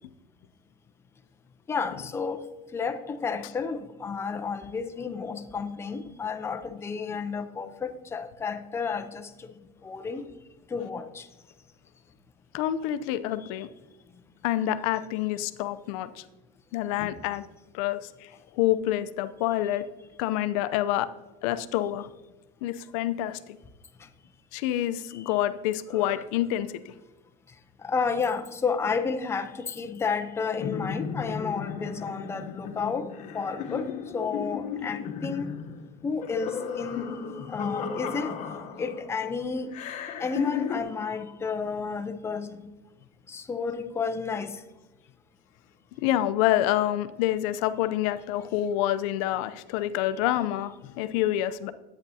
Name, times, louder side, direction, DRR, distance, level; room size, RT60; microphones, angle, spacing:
voice 1, 1.7-2.5 2.7-9.5 9.8-10.2 10.7-11.3 17.0-17.1 24.0-24.1 25.1-25.3 25.9-26.2 27.8-33.1 33.3-35.5 36.0-37.1 37.5-38.3 38.8-39.8 40.2-42.7 43.3-44.6, left 5 dB, 15° left, 8 dB, 0.6 m, -31 dB
voice 2, 12.5-13.7 14.4-16.2 16.7-17.4 17.7-19.9 20.2-21.1 21.4-22.1 22.6-23.6 24.5-26.9 46.0-51.7, left 13 dB, 75° left, 11 dB, 0.6 m, -27 dB
sound 1, 30.6-39.1 39.7-40.8, left 7 dB, 45° left, 1.0 m, -34 dB
10.5 x 8.8 x 2.8 m, 1.1 s
cardioid pair, 155°, 17 cm